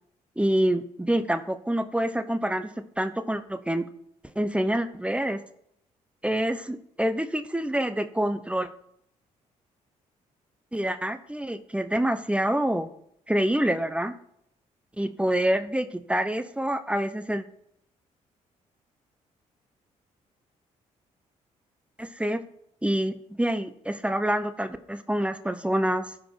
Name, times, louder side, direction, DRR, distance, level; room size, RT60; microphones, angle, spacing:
voice 1, 0.4-3.8 4.3-5.4 6.2-8.7 10.7-12.9 13.3-14.1 15.0-17.4 22.0-22.4 22.8-26.1, right 1 dB, 10° right, 11 dB, 1.0 m, -26 dB
13.0 x 5.1 x 5.9 m, 0.71 s
supercardioid pair, 60°, 15 cm